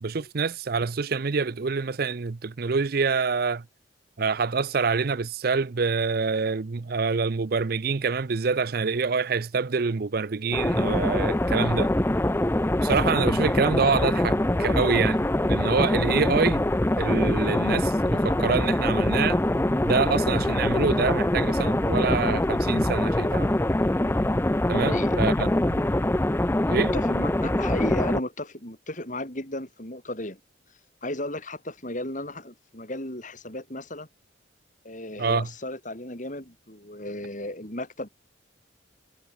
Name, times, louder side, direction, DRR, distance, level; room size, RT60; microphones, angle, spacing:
voice 1, 0.0-3.6 4.2-11.9 12.8-16.6 17.0-19.4 19.8-23.6 24.7-25.8 26.7-26.9 35.2-35.5, right 4 dB, 55° right, 0.6 m, -26 dB
sound 1, 10.5-28.2, left 1 dB, 10° left, 0.5 m, -24 dB
voice 2, 24.7-25.2 26.7-30.4 31.0-34.1 34.8-38.1, left 1 dB, 40° left, 6.4 m, -35 dB
head